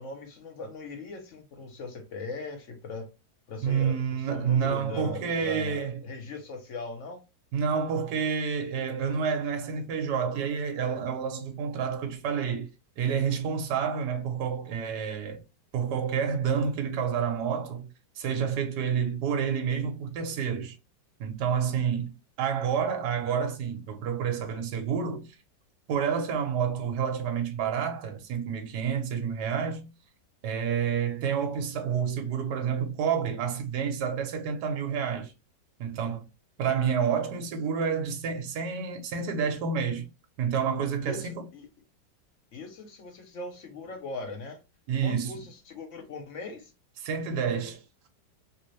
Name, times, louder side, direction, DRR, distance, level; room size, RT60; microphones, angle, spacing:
voice 1, 0.0-3.1 3.5-7.2 41.0-41.7 42.5-44.6 45.0-46.7, left 3 dB, 60° left, 0.8 m, -40 dB
voice 2, 3.6-6.0 7.5-12.7 13.0-15.4 15.7-17.9 18.2-20.7 21.2-25.3 25.9-29.9 30.4-35.3 35.8-36.2 36.6-40.1 40.4-41.3 44.9-45.3 47.0-47.8, right 7 dB, 70° right, 1.3 m, -29 dB
3.3 x 2.7 x 3.0 m
omnidirectional pair, 1.9 m